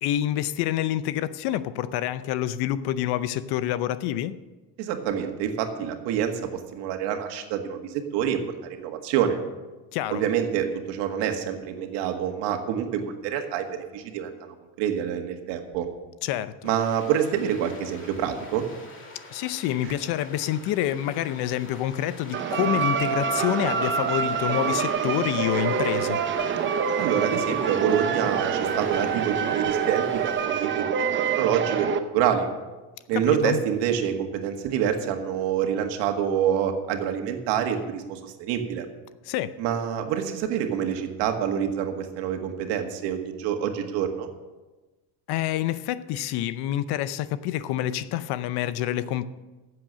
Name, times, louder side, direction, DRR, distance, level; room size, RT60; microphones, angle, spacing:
voice 1, 0.0-4.4 9.9-10.2 16.2-16.5 19.3-26.2 33.1-33.6 39.2-39.6 45.3-49.3, left 12 dB, 65° left, 15 dB, 0.7 m, -27 dB
voice 2, 4.8-9.4 10.1-13.7 13.9-14.3 14.8-15.9 16.6-18.7 19.8-19.9 27.0-31.9 32.1-32.5 33.1-38.9 39.6-44.3, right 9 dB, 75° right, 5 dB, 1.8 m, -27 dB
sound 1, 16.6-30.5, left 2 dB, 30° left, 2.1 m, -45 dB
sound 2, 22.3-32.0, right 6 dB, 30° right, 0.7 m, -26 dB
14.5 x 7.8 x 6.4 m, 1.2 s
cardioid pair, 160°, 42 cm